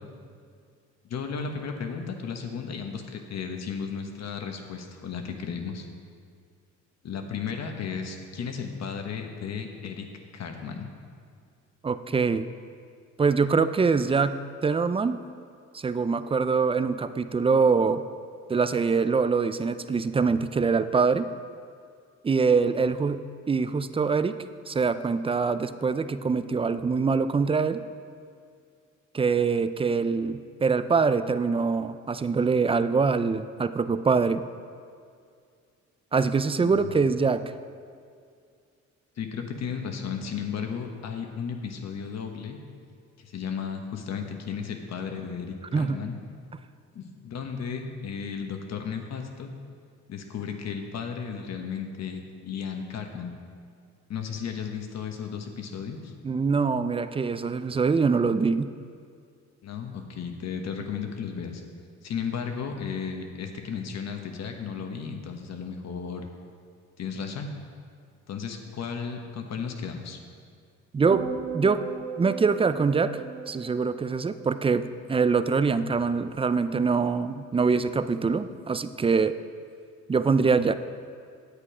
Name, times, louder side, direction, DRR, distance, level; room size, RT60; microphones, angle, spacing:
voice 1, 1.1-5.9 7.0-10.1 10.3-10.9 36.6-36.9 39.2-42.6 43.2-46.2 46.9-49.5 50.1-53.3 54.1-56.1 59.6-61.6 62.0-66.3 67.0-67.5 68.3-70.2, left 6 dB, 60° left, 4 dB, 1.2 m, -34 dB
voice 2, 11.8-12.5 13.2-15.2 15.7-18.0 18.5-21.3 22.2-24.4 24.7-27.8 29.1-34.4 36.1-37.4 45.7-46.0 56.2-58.7 70.9-71.2 71.5-71.8 72.2-73.1 73.5-79.3 80.1-80.7, right 5 dB, 20° right, 12 dB, 0.4 m, -24 dB
sound 1, 71.1-75.5 75.8-76.2, right 6 dB, 75° right, 1.2 m, -38 dB
9.8 x 8.3 x 4.9 m, 2.2 s
cardioid pair, 90°, 30 cm